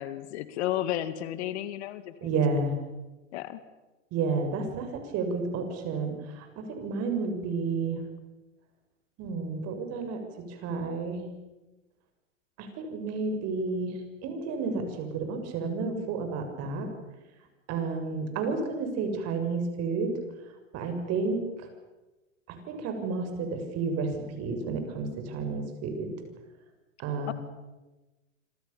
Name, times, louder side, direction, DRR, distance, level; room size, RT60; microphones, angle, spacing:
voice 1, 0.0-2.3 3.3-3.6 27.3-27.4, left 12 dB, 60° left, 13 dB, 2.3 m, -33 dB
voice 2, 2.2-2.7 4.1-8.0 9.2-11.3 12.6-16.9 17.7-20.1 20.7-21.7 22.5-26.1 27.0-27.3, right 4 dB, 40° right, 6 dB, 7.3 m, -31 dB
27.5 x 26.0 x 7.3 m, 1.1 s
hypercardioid pair, 110°, 38 cm